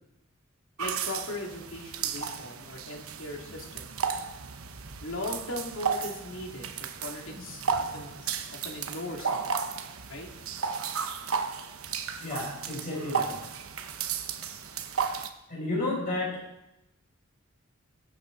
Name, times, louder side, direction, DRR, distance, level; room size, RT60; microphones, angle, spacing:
voice 1, 0.8-3.9 5.0-9.4 10.1-10.3, left 1 dB, 70° left, 1 dB, 2.4 m, -39 dB
sound 1, 0.8-15.3, right 6 dB, 80° right, 1.0 m, -34 dB
voice 2, 12.2-13.3 15.5-16.3, left 2 dB, 40° left, -5 dB, 6.1 m, -31 dB
20.5 x 8.5 x 3.9 m, 0.89 s
head